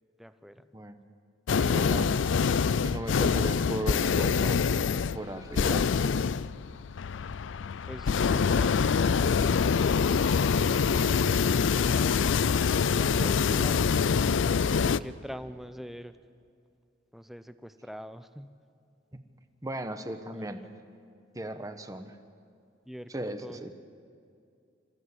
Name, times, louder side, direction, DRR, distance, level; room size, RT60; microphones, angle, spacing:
voice 1, 0.2-0.7 7.9-14.1 14.6-16.1 17.1-18.5 20.3-20.7 22.9-23.7, equal, ahead, 11 dB, 0.7 m, -45 dB
sound 1, 1.5-15.0, left 6 dB, 85° left, 0.4 m, -25 dB
voice 2, 1.5-2.1 2.8-4.6 5.1-5.9 12.8-13.7 19.1-19.2 19.6-20.6 21.3-22.2 23.1-23.7, right 1 dB, 20° right, 8 dB, 1.1 m, -37 dB
27.0 x 15.0 x 8.1 m, 2.4 s
head